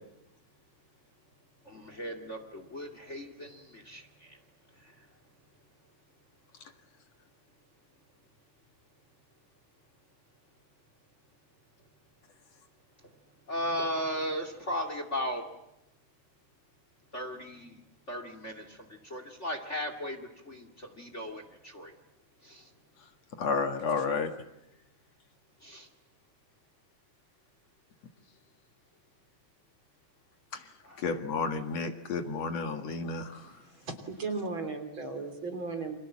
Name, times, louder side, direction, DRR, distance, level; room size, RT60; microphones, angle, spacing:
voice 1, 1.6-4.4 4.8-5.1 13.0-13.2 13.5-15.5 17.1-17.8 18.1-21.9 22.4-22.7 25.6-25.9 30.8-31.0, equal, 25° left, 7 dB, 2.4 m, -37 dB
voice 2, 23.4-24.3 30.5-30.7 31.0-33.6, left 4 dB, 60° left, 7 dB, 2.9 m, -31 dB
voice 3, 33.2-36.0, right 3 dB, 40° right, 6 dB, 3.9 m, -37 dB
29.5 x 26.5 x 7.5 m, 0.87 s
omnidirectional pair, 3.4 m